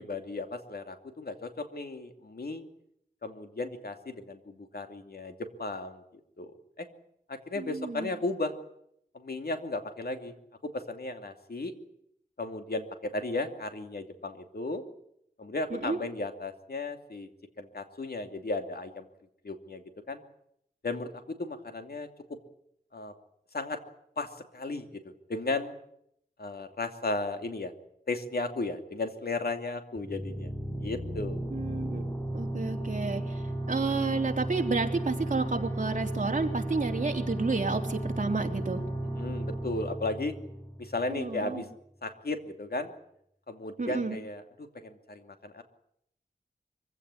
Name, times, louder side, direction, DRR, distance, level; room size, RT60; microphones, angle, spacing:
voice 1, 0.0-2.6 3.2-6.0 6.4-6.9 7.3-8.5 9.1-10.3 10.6-11.7 12.4-14.8 15.4-17.3 17.6-19.1 19.4-19.8 20.1-20.2 20.8-22.1 22.9-23.1 23.5-23.8 24.2-24.3 24.5-25.7 26.4-27.7 28.1-30.5 30.8-31.4 39.2-40.3 40.8-41.7 42.0-42.9 43.5-45.6, left 2 dB, 65° left, 6 dB, 2.7 m, -35 dB
voice 2, 7.5-8.1 15.7-16.0 31.5-32.0 32.3-38.8 41.1-41.6 43.8-44.2, right 3 dB, 50° right, 3 dB, 3.4 m, -31 dB
sound 1, 30.0-41.4, right 1 dB, 15° left, 6.9 m, -34 dB
24.5 x 16.5 x 9.8 m, 0.73 s
wide cardioid pair, 80°, 17 cm